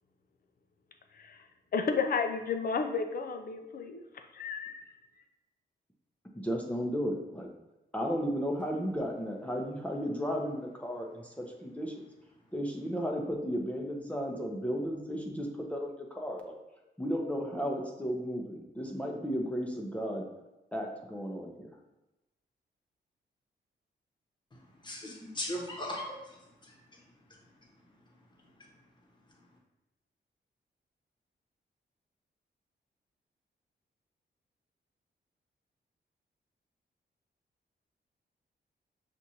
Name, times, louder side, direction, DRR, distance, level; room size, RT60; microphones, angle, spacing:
voice 1, 1.1-1.5 1.7-4.0 4.3-4.9, left 5 dB, 55° left, 5 dB, 0.5 m, -32 dB
voice 2, 6.3-7.5 7.9-11.9 12.5-16.6 17.0-20.3 20.7-21.7, equal, 5° left, 0 dB, 0.6 m, -34 dB
voice 3, 24.8-26.8, left 1 dB, 25° left, -2 dB, 1.0 m, -38 dB
6.0 x 2.5 x 2.8 m, 0.96 s
cardioid pair, 95°, 18 cm